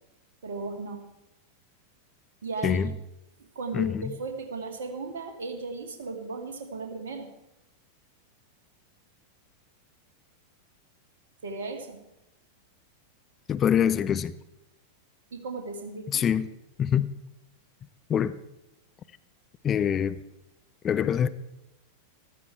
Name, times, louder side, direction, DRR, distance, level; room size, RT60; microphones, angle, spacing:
voice 1, 0.4-1.0 2.4-2.8 3.6-7.3 11.4-12.0 15.3-16.2, right 3 dB, 60° right, 2.2 m, -36 dB
voice 2, 2.6-2.9 3.7-4.2 13.5-14.3 16.1-16.5 16.8-17.1 18.1-18.3 19.6-20.2 20.8-21.3, left 8 dB, 25° left, 0.5 m, -25 dB
14.5 x 13.5 x 4.7 m
figure-of-eight pair, 90°, 0 cm